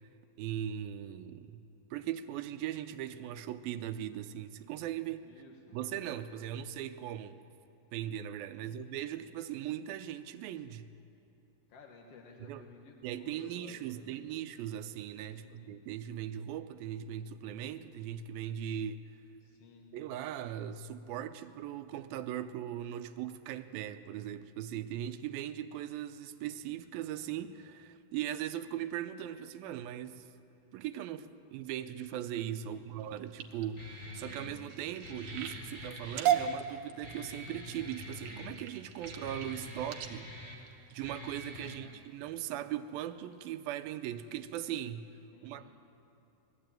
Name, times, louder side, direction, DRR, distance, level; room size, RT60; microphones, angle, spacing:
voice 1, 0.4-1.6 1.9-5.2 5.7-7.4 7.9-10.9 12.5-12.6 13.0-19.1 19.9-30.3 30.7-40.3 40.9-45.1 45.4-45.7, right 11 dB, 85° right, 10 dB, 2.5 m, -39 dB
voice 2, 5.2-5.8 8.5-8.8 11.7-14.2 15.3-15.8 19.4-20.0 32.6-33.2 41.6-41.9 45.3-45.7, left 4 dB, 55° left, 1 dB, 1.9 m, -56 dB
sound 1, 33.0-41.7 42.3-42.6 43.0-43.4 43.9-44.0 44.3-44.4, right 10 dB, 70° right, 2.7 m, -37 dB
Guitar, 33.8-41.8, left 1 dB, 25° left, 2.9 m, -46 dB
20.5 x 14.0 x 9.0 m, 2.9 s
omnidirectional pair, 4.2 m